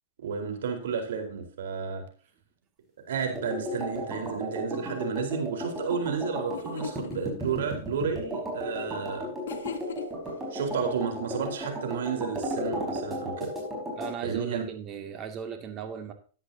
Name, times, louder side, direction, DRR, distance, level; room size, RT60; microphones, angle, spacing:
voice 1, 0.2-2.0 3.1-9.3 10.5-13.5 14.2-14.6, right 6 dB, 80° right, 4 dB, 4.3 m, -32 dB
sound 1, 3.3-14.1, equal, 10° right, 5.2 m, -35 dB
sound 2, 6.1-6.2 6.5-7.2 9.5-10.3, left 7 dB, 85° left, 1.4 m, -38 dB
voice 2, 14.0-16.1, right 8 dB, 30° right, 6 dB, 2.4 m, -37 dB
13.5 x 10.5 x 2.8 m, 0.39 s
hypercardioid pair, 140°, 0 cm